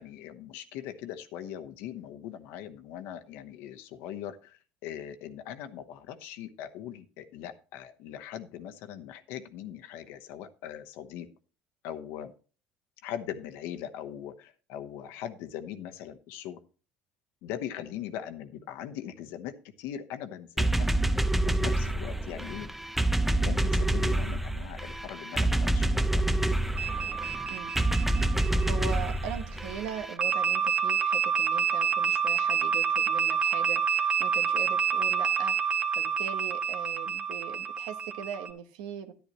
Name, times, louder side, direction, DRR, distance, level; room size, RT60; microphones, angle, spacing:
voice 1, 0.0-11.3 11.8-12.3 13.0-16.6 17.4-20.9 21.5-22.7 23.4-26.2, left 10 dB, 70° left, 9 dB, 1.0 m, -40 dB
sound 1, 20.6-30.1, right 1 dB, 5° right, 0.6 m, -27 dB
sound 2, 26.8-29.3 30.2-38.5, right 7 dB, 25° right, 1.5 m, -28 dB
voice 2, 28.6-39.1, right 8 dB, 85° right, 8 dB, 1.2 m, -40 dB
10.5 x 10.5 x 3.0 m, 0.37 s
supercardioid pair, 90°, 4 cm